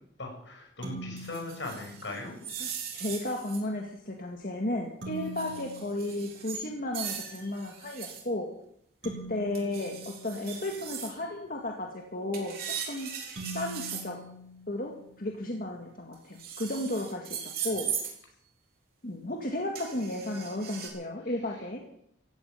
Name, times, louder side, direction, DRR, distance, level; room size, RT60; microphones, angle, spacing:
voice 1, 0.2-2.4, left 2 dB, 80° left, 2 dB, 6.1 m, -39 dB
sound 1, 0.8-2.5 5.0-7.0 9.0-11.2 13.4-15.4, right 1 dB, 75° right, 5.9 m, -44 dB
sound 2, 1.2-3.7 5.3-6.6 6.9-8.2 9.5-11.1 12.3-14.1 16.1-18.1 19.7-20.9, right 7 dB, 55° right, 3.9 m, -39 dB
voice 2, 2.6-8.5 9.0-13.1 13.5-14.2 14.7-17.9 19.0-21.8, left 1 dB, 50° left, 1 dB, 2.0 m, -34 dB
15.5 x 9.9 x 9.2 m, 0.70 s
head